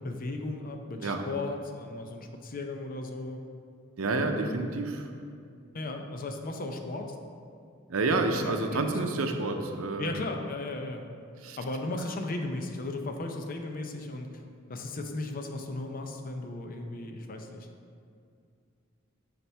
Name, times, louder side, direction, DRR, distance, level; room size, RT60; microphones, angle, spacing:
voice 1, 0.0-3.4 4.1-4.7 5.7-7.2 8.4-9.2 10.0-11.0 11.6-14.4 14.7-17.7, left 2 dB, 45° left, 4 dB, 0.6 m, -36 dB
voice 2, 4.0-5.1 7.9-10.1 11.4-11.6, right 3 dB, 90° right, 5 dB, 0.6 m, -29 dB
7.0 x 5.8 x 3.4 m, 2.4 s
head